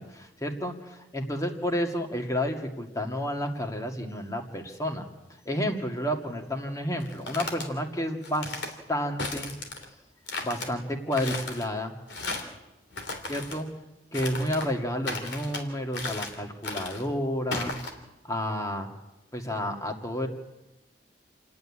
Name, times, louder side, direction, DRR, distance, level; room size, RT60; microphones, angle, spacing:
voice 1, 0.0-5.1 5.5-9.5 10.4-11.9 13.3-13.7 14.1-17.7 18.2-18.9 19.3-20.3, equal, 20° left, 3 dB, 2.1 m, -31 dB
sound 1, 7.0-7.7 8.2-8.7 9.2-9.9 10.3-10.7 11.1-11.7 12.1-12.6 12.9-13.6 14.1-14.7 15.0-15.6 15.9-16.4 16.6-17.1 17.5-17.9, left 3 dB, 80° left, 3.1 m, -35 dB
28.0 x 9.5 x 9.8 m, 1.0 s
head